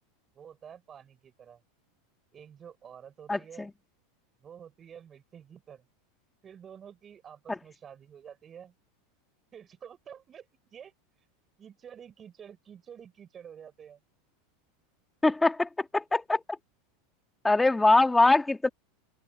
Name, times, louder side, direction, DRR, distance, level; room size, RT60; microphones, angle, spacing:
voice 1, 0.3-1.6 2.3-3.7 4.4-5.8 6.4-8.7 9.5-10.9 11.6-14.0, right 8 dB, 25° right, 6.6 m, -49 dB
voice 2, 3.3-3.7 15.2-16.6 17.4-18.7, left 2 dB, 10° left, 1.8 m, -23 dB
open air
supercardioid pair, 130°, 0 cm